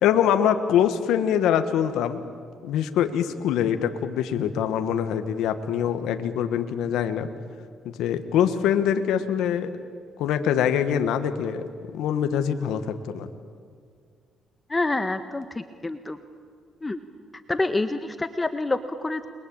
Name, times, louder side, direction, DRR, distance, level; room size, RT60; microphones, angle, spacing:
voice 1, 0.0-2.2 2.6-7.3 7.8-9.7 10.2-11.6 11.9-13.3, left 9 dB, 85° left, 9 dB, 1.5 m, -24 dB
voice 2, 14.7-16.2 16.8-17.0 17.5-19.3, left 2 dB, 20° left, 9 dB, 1.3 m, -27 dB
30.0 x 22.5 x 8.8 m, 2.1 s
cardioid pair, 90°, 0 cm